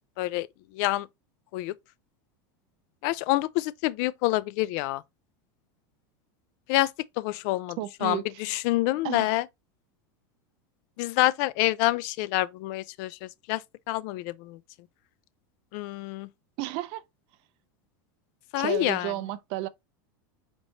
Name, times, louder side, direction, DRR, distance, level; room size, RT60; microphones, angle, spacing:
voice 1, 0.2-0.5 0.7-1.1 1.5-1.7 3.0-5.0 6.7-6.9 7.2-9.4 11.0-13.6 13.9-14.6 15.7-16.3 18.5-19.1, left 18 dB, 55° left, 0.4 m, -27 dB
voice 2, 7.8-8.3 9.0-9.3 16.6-17.0 18.6-19.7, right 16 dB, 50° right, 0.5 m, -32 dB
4.5 x 2.7 x 2.8 m
supercardioid pair, 140°, 12 cm